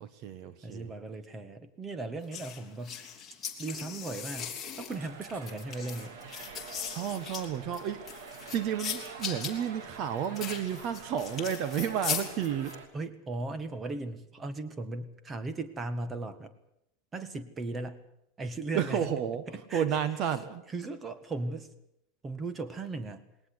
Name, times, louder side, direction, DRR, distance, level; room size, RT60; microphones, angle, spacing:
voice 1, 0.0-0.9 6.9-12.8 18.7-19.4 19.7-20.6, right 9 dB, 40° right, 13 dB, 1.4 m, -32 dB
voice 2, 0.6-3.0 3.6-6.2 12.9-16.5 17.1-18.0 18.4-19.1 19.5-19.9 20.7-21.7 22.2-23.3, right 2 dB, 15° right, 12 dB, 1.8 m, -37 dB
sound 1, 2.3-12.8, left 7 dB, 15° left, 3.4 m, -39 dB
sound 2, 4.9-12.9, right 6 dB, 75° right, 3.5 m, -46 dB
21.0 x 19.0 x 8.2 m, 0.77 s
supercardioid pair, 160°, 0 cm